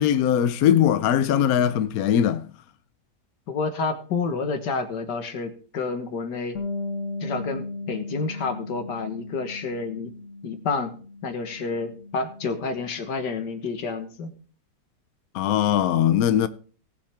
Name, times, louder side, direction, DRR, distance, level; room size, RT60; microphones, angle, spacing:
voice 1, 0.0-2.4 15.3-16.5, left 10 dB, 70° left, 1.0 m, -20 dB
voice 2, 3.5-6.6 7.2-10.1 10.4-10.9 11.2-14.3, left 4 dB, 85° left, 2.0 m, -29 dB
Bass guitar, 6.5-12.8, left 3 dB, 50° left, 1.4 m, -36 dB
18.0 x 7.4 x 3.4 m
omnidirectional pair, 1.8 m